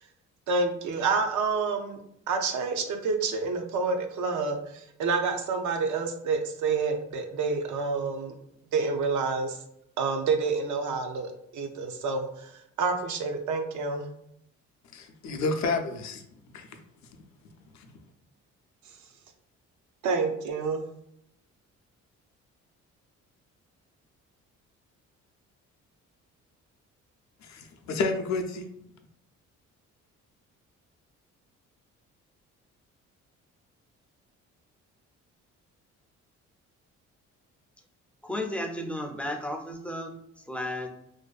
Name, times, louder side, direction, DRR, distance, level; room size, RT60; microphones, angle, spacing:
voice 1, 0.5-2.0 2.3-8.3 8.7-9.6 10.0-14.1 20.0-20.8, right 4 dB, 75° right, 4 dB, 0.5 m, -28 dB
voice 2, 14.9-16.2 16.5-16.8 17.7-17.9 27.4-28.7, left 3 dB, 65° left, 5 dB, 0.5 m, -30 dB
voice 3, 38.2-40.1 40.5-40.9, left 1 dB, 5° left, 2 dB, 0.3 m, -33 dB
2.5 x 2.2 x 2.3 m, 0.75 s
cardioid pair, 90°, 30 cm